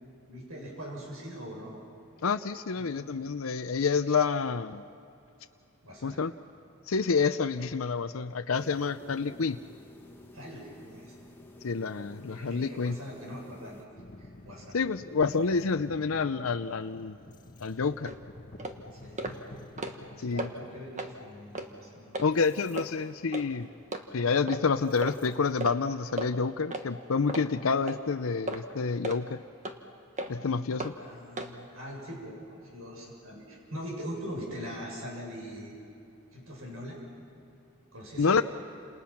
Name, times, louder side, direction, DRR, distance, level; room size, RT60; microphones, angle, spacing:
voice 1, 0.3-1.9 2.8-2.9 5.8-6.2 10.3-11.1 12.3-13.8 14.2-14.8 19.0-19.2 20.2-22.1 31.0-35.8 36.3-37.0 37.9-38.4, equal, 80° right, -1 dB, 7.6 m, -42 dB
voice 2, 2.2-4.8 6.0-6.3 6.9-9.6 11.6-13.0 14.7-17.2 17.6-18.1 20.2-20.5 22.2-23.7 24.1-29.4 30.3-30.9 38.2-38.4, left 5 dB, 75° left, 8 dB, 0.6 m, -28 dB
sound 1, 8.5-13.9, left 1 dB, 10° left, 1.6 m, -52 dB
sound 2, 13.9-25.6, left 2 dB, 40° left, 1.4 m, -51 dB
sound 3, 18.0-18.2 18.6-18.8 19.2-19.4 19.7-20.1 20.4-20.5 21.0-21.1 21.6-21.7 22.1-22.3 22.8-22.9 23.3-23.5 23.9-24.0 24.5-24.6 25.0-25.2 25.6-25.8 26.2-26.3 26.7-26.9 27.3-27.5 27.9-28.0 28.5-28.6 29.0-29.2 29.6-29.8 30.2-30.3 30.8-30.9 31.4-31.5, right 2 dB, 35° right, 1.5 m, -35 dB
29.5 x 28.0 x 5.9 m, 2.7 s
head